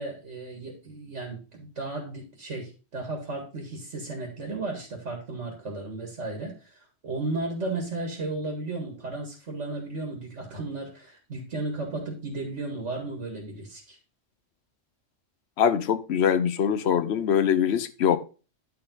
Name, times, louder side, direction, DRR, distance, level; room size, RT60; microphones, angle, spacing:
voice 1, 0.0-14.0, right 2 dB, 65° right, 2.2 m, -34 dB
voice 2, 15.6-18.2, left 8 dB, 60° left, 0.9 m, -23 dB
10.5 x 4.7 x 3.9 m
omnidirectional pair, 1.3 m